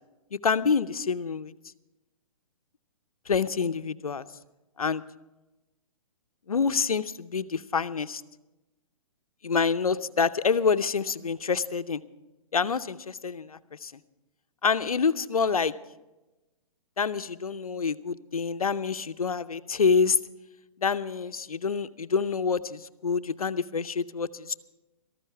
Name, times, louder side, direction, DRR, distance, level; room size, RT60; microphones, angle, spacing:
voice 1, 0.3-1.5 3.3-4.2 4.8-5.0 6.5-8.2 9.4-12.0 12.5-13.9 14.6-15.7 17.0-20.2 20.8-24.5, left 5 dB, 90° left, 13 dB, 0.7 m, -27 dB
17.5 x 14.0 x 4.6 m, 1.0 s
hypercardioid pair, 130°, 18 cm